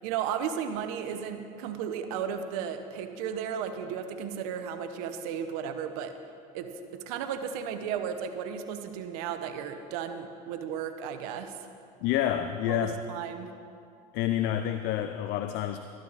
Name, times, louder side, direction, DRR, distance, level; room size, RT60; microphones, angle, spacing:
voice 1, 0.0-6.2 6.5-11.6 12.7-13.5, right 8 dB, 80° right, 8 dB, 1.0 m, -34 dB
voice 2, 12.0-13.0 14.1-15.8, left 11 dB, 65° left, 9 dB, 0.6 m, -28 dB
13.5 x 12.0 x 4.1 m, 2.4 s
supercardioid pair, 90°, 19 cm